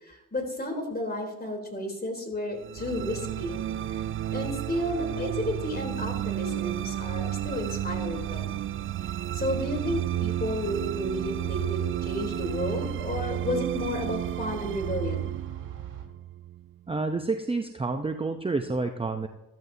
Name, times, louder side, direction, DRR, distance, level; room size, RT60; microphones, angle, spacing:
voice 1, 0.0-3.6 3.9-4.0 4.3-8.5 9.3-15.3, left 1 dB, 25° left, 3 dB, 3.6 m, -32 dB
sound 1, 2.6-17.0, right 12 dB, 35° right, 0.4 m, -32 dB
sound 2, 2.8-16.1, right 9 dB, 55° right, 2.7 m, -41 dB
voice 2, 16.9-19.3, right 3 dB, 15° right, 6 dB, 0.8 m, -29 dB
14.5 x 13.0 x 2.8 m, 0.96 s
supercardioid pair, 65°, 39 cm